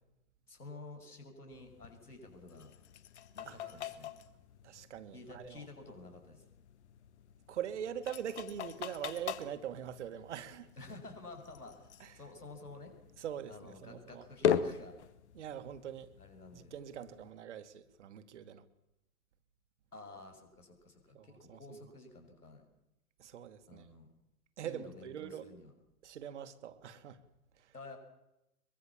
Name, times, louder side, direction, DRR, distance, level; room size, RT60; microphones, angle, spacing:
voice 1, 0.5-2.7 3.3-4.1 5.1-6.4 10.8-11.9 12.2-13.0 13.5-15.0 16.2-16.7 19.9-22.6 23.7-24.1 24.6-25.7 27.7-28.0, left 2 dB, 80° left, 7.3 m, -51 dB
sound 1, 1.5-17.3, left 8 dB, 45° left, 1.7 m, -41 dB
voice 2, 4.6-5.7 7.5-10.7 12.0-12.2 13.2-14.3 15.3-16.1 16.5-18.6 21.1-21.8 23.2-23.9 24.6-25.5 26.0-27.2 27.6-27.7, right 9 dB, 50° right, 2.0 m, -43 dB
23.5 x 23.0 x 7.4 m
figure-of-eight pair, 115°, 45 cm